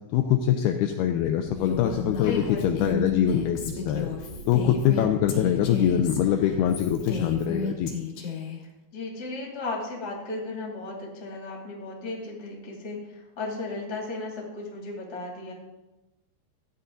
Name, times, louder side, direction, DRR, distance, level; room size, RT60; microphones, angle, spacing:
voice 1, 0.1-4.1 4.5-7.9, left 10 dB, 85° left, 5 dB, 2.3 m, -24 dB
sound 1, 1.4-7.4, right 1 dB, 45° right, 5.2 m, -41 dB
Female speech woman speaking, 1.5-8.6, left 4 dB, 55° left, 2.5 m, -32 dB
voice 2, 2.2-2.9 8.9-15.5, left 2 dB, 25° left, -2 dB, 2.4 m, -35 dB
14.5 x 9.7 x 3.8 m, 1.0 s
omnidirectional pair, 5.2 m